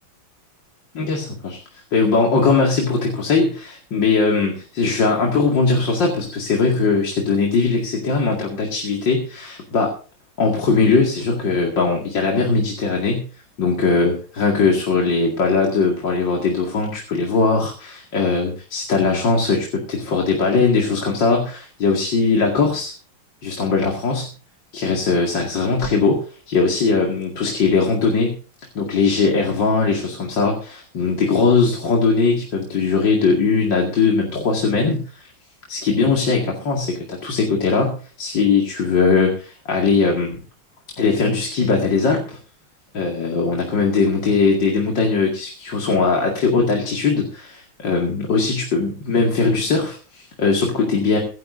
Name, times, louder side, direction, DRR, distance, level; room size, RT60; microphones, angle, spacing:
voice 1, 0.9-9.9 10.4-13.2 13.6-22.9 23.4-24.3 24.7-28.3 28.7-35.3 35.7-40.4 41.0-42.4 42.9-51.2, left 4 dB, 70° left, 0 dB, 3.0 m, -20 dB
23.5 x 11.0 x 2.7 m, 0.37 s
omnidirectional pair, 2.0 m